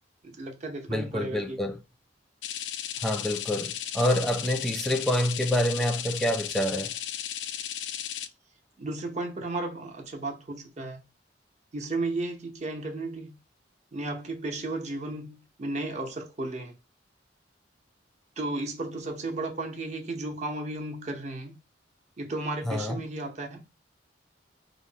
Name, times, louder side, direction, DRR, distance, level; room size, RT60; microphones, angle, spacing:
voice 1, 0.2-1.6 8.8-11.0 11.7-13.4 13.9-16.8 18.4-21.6 22.2-23.6, right 2 dB, 40° right, 0.7 m, -34 dB
voice 2, 0.9-1.8 3.0-6.9 22.7-23.0, left 1 dB, ahead, 0.4 m, -27 dB
sound 1, 2.4-8.3, left 10 dB, 75° left, 0.3 m, -35 dB
3.0 x 2.0 x 2.6 m
head